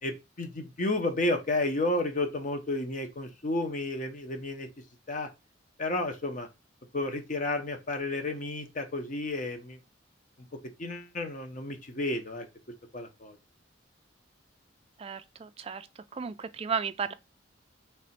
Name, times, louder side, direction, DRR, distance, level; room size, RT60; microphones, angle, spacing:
voice 1, 0.0-4.7 5.1-5.3 5.8-6.5 6.9-9.8 10.8-12.5 12.9-13.4, left 2 dB, 40° left, 0.8 m, -31 dB
voice 2, 15.0-15.9 16.1-17.1, right 6 dB, 30° right, 0.3 m, -34 dB
3.4 x 3.0 x 4.2 m
head